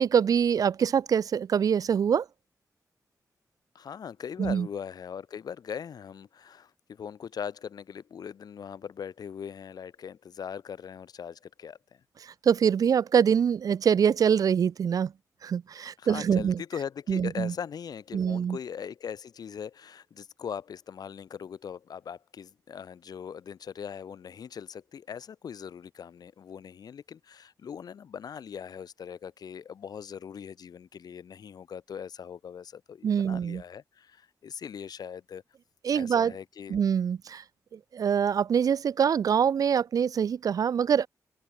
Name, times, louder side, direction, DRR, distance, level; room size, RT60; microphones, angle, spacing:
voice 1, 0.0-2.3 4.4-4.7 12.2-15.1 15.4-16.6 17.1-17.5 18.1-18.6 33.0-33.6 35.8-36.3 36.7-37.4 37.9-41.1, right 7 dB, 65° right, 0.5 m, -24 dB
voice 2, 3.7-12.0 16.0-35.4 35.9-36.8, left 7 dB, 80° left, 4.2 m, -40 dB
open air
wide cardioid pair, 140°, 7 cm